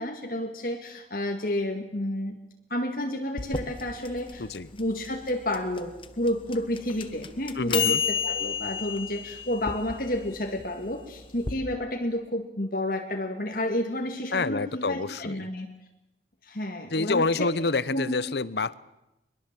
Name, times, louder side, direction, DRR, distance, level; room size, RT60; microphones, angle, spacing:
voice 1, 0.0-2.4 2.7-4.5 4.8-15.7 16.4-17.5 17.9-18.2, left 1 dB, 50° left, 2 dB, 2.1 m, -30 dB
sound 1, 3.4-11.5, left 7 dB, 30° left, 1.2 m, -32 dB
voice 2, 7.6-8.0 14.3-15.5 16.9-18.8, left 3 dB, 70° left, 17 dB, 0.9 m, -28 dB
24.0 x 22.0 x 7.6 m, 0.93 s
head